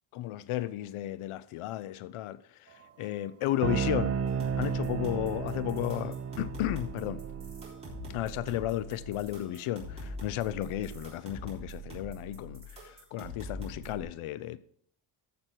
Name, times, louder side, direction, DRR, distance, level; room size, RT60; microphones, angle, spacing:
voice 1, 0.1-4.2 4.6-7.2 8.1-14.6, left 14 dB, 85° left, 0.6 m, -34 dB
sound 1, 3.6-9.2, right 7 dB, 35° right, 0.4 m, -34 dB
sound 2, 4.3-14.0, equal, 15° right, 3.6 m, -43 dB
14.5 x 6.1 x 4.5 m
cardioid pair, 175°, 49 cm